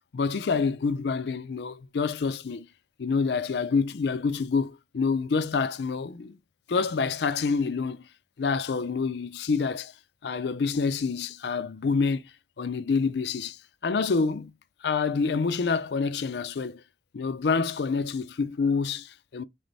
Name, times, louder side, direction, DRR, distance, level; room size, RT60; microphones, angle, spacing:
voice 1, 0.1-2.7 3.0-6.4 6.7-8.0 8.4-9.9 10.2-12.2 12.6-14.5 14.8-16.8 17.1-19.4, left 4 dB, 70° left, 0.4 m, -27 dB
3.8 x 3.2 x 4.0 m
head